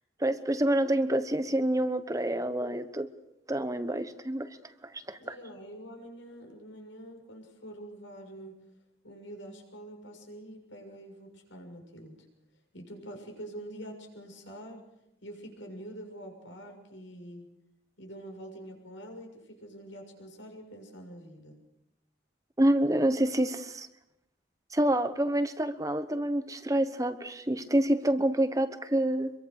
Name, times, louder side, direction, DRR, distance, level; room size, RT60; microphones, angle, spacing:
voice 1, 0.2-3.1 3.5-4.6 4.8-5.4 22.6-23.9 24.7-29.3, right 1 dB, 15° right, 10 dB, 1.0 m, -27 dB
voice 2, 5.2-8.6 9.0-12.3 12.7-14.8 15.2-17.5 18.0-21.6, right 1 dB, 85° left, 3 dB, 6.9 m, -45 dB
26.5 x 23.0 x 6.6 m, 0.87 s
head